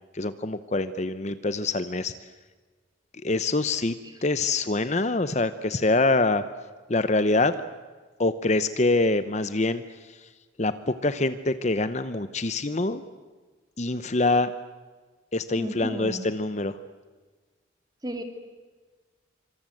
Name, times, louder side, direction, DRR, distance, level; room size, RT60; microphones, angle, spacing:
voice 1, 0.1-2.1 3.2-3.9 4.2-6.4 6.9-7.6 8.2-9.8 10.6-13.0 13.8-14.5 15.3-16.8, left 2 dB, 35° left, 12 dB, 0.8 m, -25 dB
voice 2, 15.6-16.2 18.0-18.2, equal, 20° right, 6 dB, 2.6 m, -33 dB
26.0 x 26.0 x 7.8 m, 1.4 s
head